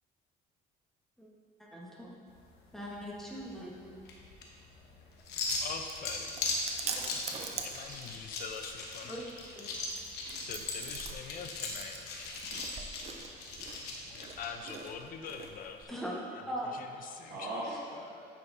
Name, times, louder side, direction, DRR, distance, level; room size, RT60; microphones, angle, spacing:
voice 1, 1.6-2.1 2.7-4.0 9.0-9.3 9.6-9.7 15.9-16.2 16.5-16.9 17.2-17.3, equal, ahead, -4 dB, 1.3 m, -40 dB
sound 1, 2.3-14.5, left 3 dB, 85° left, 1.0 m, -39 dB
Chewing mastication, 5.2-15.8, right 5 dB, 40° right, 0.6 m, -45 dB
voice 2, 5.6-6.3 7.6-9.2 10.5-12.3 14.1-16.0 16.3-16.4 17.0-17.5, left 6 dB, 55° left, 6 dB, 0.6 m, -44 dB
voice 3, 6.8-8.0 17.3-18.3, right 1 dB, 55° right, -8 dB, 1.4 m, -42 dB
8.6 x 5.8 x 2.7 m, 2.2 s
cardioid pair, 110°, 17 cm